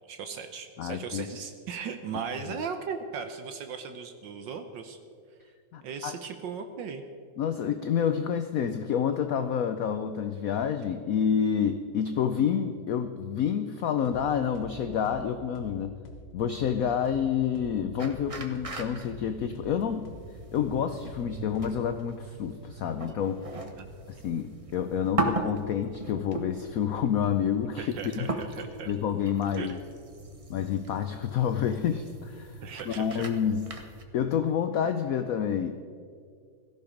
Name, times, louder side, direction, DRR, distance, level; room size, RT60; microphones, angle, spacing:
voice 1, 0.1-5.0 5.8-7.0 23.8-23.9 27.8-28.9 29.6-29.8 32.6-33.2, right 6 dB, 70° right, 8 dB, 1.5 m, -37 dB
voice 2, 0.8-1.3 5.7-6.2 7.4-16.0 16.3-20.0 20.5-23.5 24.1-28.3 28.9-29.8 30.5-32.6 32.9-33.6 34.1-35.8, left 8 dB, 70° left, 9 dB, 0.8 m, -28 dB
sound 1, 14.0-14.2 14.5-18.2 18.5-22.0, left 3 dB, 50° left, 1.4 m, -46 dB
sound 2, 18.0-34.0, right 2 dB, 25° right, 0.8 m, -38 dB
17.0 x 14.0 x 5.1 m, 2.2 s
omnidirectional pair, 2.1 m